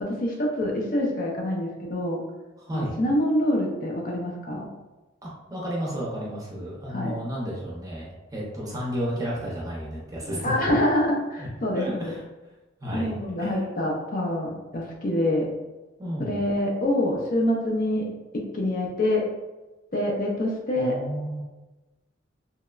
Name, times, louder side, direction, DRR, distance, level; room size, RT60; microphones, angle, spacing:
voice 1, 0.0-2.2 2.7-4.7 6.9-7.2 10.4-12.1 12.9-15.5 16.2-18.1 18.3-19.2 19.9-20.9, left 1 dB, 45° left, -1 dB, 0.4 m, -26 dB
voice 2, 2.6-3.0 5.2-10.5 11.4-11.5 11.7-12.2 12.8-13.6 16.0-16.3 20.8-21.4, equal, 20° right, -4 dB, 0.5 m, -32 dB
2.8 x 2.1 x 2.3 m, 1.1 s
head